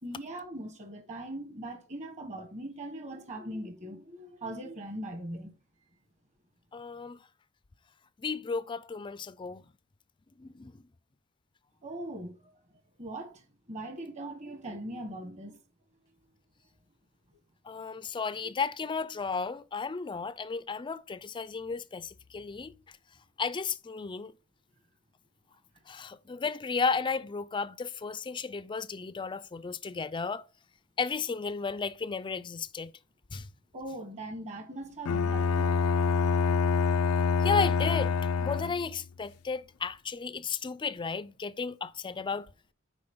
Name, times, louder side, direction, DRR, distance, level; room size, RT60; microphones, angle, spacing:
voice 1, 0.0-5.5 11.8-12.4 13.0-15.6 33.7-35.8, right 1 dB, 35° right, 1.5 m, -40 dB
voice 2, 6.7-7.2 8.2-9.6 10.4-10.8 17.7-22.7 23.4-24.3 25.9-30.4 31.0-32.9 33.3-33.5 37.4-38.1 38.4-42.5, left 5 dB, 20° left, 0.4 m, -33 dB
Bowed string instrument, 35.1-39.0, left 5 dB, 90° left, 0.4 m, -26 dB
7.7 x 5.0 x 3.7 m
head